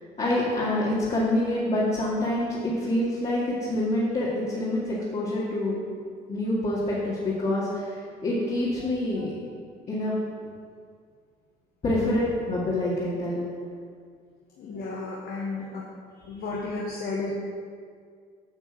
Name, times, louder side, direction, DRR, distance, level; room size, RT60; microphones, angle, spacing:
voice 1, 0.2-5.8 6.3-9.3 9.9-10.1 11.8-13.4, left 1 dB, 40° left, -8 dB, 2.2 m, -26 dB
voice 2, 8.8-9.2 11.9-12.1 14.6-15.8 16.3-17.3, left 2 dB, 60° left, -4 dB, 1.3 m, -33 dB
9.2 x 4.5 x 7.3 m, 2.1 s
cardioid pair, 110°, 17 cm